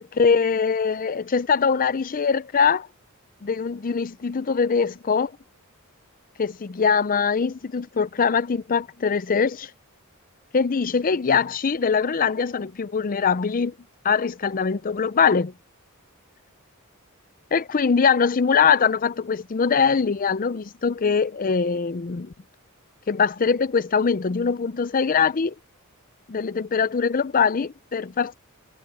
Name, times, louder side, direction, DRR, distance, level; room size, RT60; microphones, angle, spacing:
voice 1, 0.0-2.9 3.4-5.3 6.4-9.7 10.5-13.7 14.0-15.5 17.5-22.3 23.1-25.5 26.3-28.3, left 5 dB, 40° left, 0.5 m, -22 dB
head